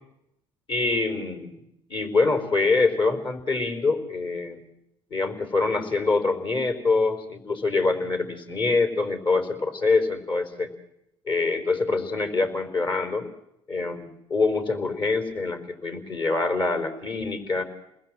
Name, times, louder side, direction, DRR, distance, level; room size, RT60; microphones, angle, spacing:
voice 1, 0.7-1.6 1.9-4.7 5.1-10.7 11.3-13.3 13.7-17.6, left 3 dB, 40° left, 7 dB, 4.4 m, -25 dB
29.0 x 20.5 x 7.6 m, 0.84 s
hypercardioid pair, 70°, 12 cm